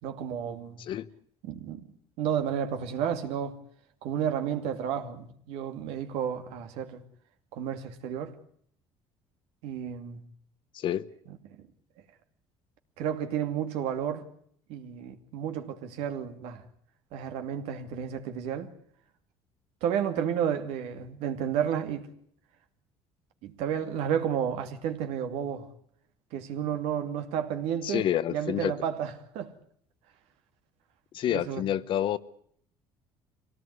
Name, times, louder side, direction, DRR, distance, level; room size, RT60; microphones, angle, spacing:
voice 1, 0.0-0.8 1.4-1.9 2.2-3.6 4.0-7.0 7.5-8.3 9.6-10.2 13.0-14.2 14.7-16.6 17.1-18.7 19.8-22.1 23.4-25.7 26.3-29.5 31.3-31.6, right 8 dB, 80° right, 2.6 m, -31 dB
voice 2, 10.7-11.0 27.8-28.7 31.1-32.2, left 11 dB, 55° left, 1.0 m, -28 dB
24.5 x 18.0 x 9.6 m
cardioid pair, 130°, 10 cm